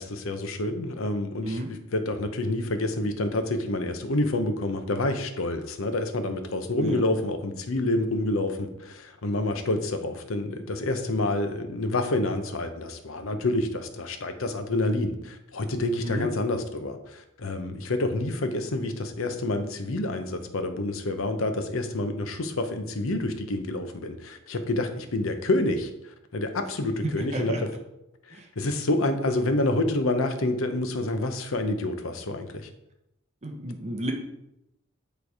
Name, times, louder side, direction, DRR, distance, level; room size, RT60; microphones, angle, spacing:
voice 1, 0.0-25.9 26.3-27.7 28.3-32.7, left 2 dB, 75° left, 7 dB, 0.8 m, -28 dB
voice 2, 27.2-27.6 28.3-28.4 33.4-34.1, right 1 dB, 30° right, 3 dB, 0.7 m, -32 dB
8.6 x 3.3 x 4.7 m, 0.86 s
head